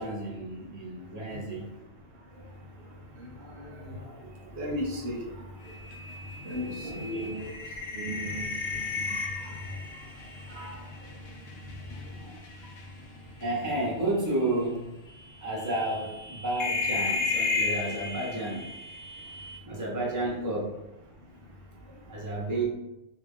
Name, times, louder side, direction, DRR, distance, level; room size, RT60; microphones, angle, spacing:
voice 1, 0.0-1.7 3.3-4.5 6.8-7.3 13.4-14.9 15.4-18.7 19.7-20.8 22.1-22.7, right 2 dB, 20° right, -4 dB, 0.7 m, -32 dB
voice 2, 4.5-5.2 6.4-7.5 8.0-8.5 9.1-9.2 10.5-10.7, equal, 80° right, -1 dB, 1.0 m, -34 dB
sound 1, 5.7-12.0 12.4-12.8 14.0-14.1 14.6-14.7 15.6-19.6, left 3 dB, 70° left, 0.8 m, -34 dB
2.9 x 2.5 x 3.5 m, 0.96 s
omnidirectional pair, 1.1 m